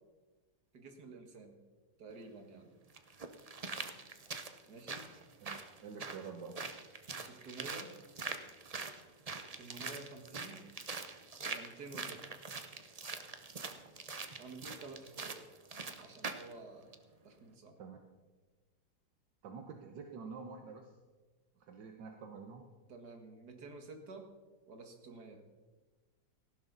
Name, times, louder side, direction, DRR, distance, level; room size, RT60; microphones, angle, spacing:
voice 1, 0.7-1.6 2.0-2.7 4.7-5.1 7.2-8.0 9.6-10.7 11.4-12.4 14.4-15.5 15.8-16.9 17.2-17.8 22.9-24.3 24.7-25.5, right 3 dB, 65° right, 4 dB, 2.3 m, -50 dB
sound 1, 2.1-2.2 2.9-16.5 16.9-17.0, right 4 dB, 35° right, 0.6 m, -44 dB
voice 2, 5.4-6.6 17.8-18.0 19.4-20.9 21.6-22.7, right 5 dB, 80° right, 4 dB, 1.7 m, -48 dB
18.0 x 15.0 x 4.0 m, 1.3 s
omnidirectional pair, 1.9 m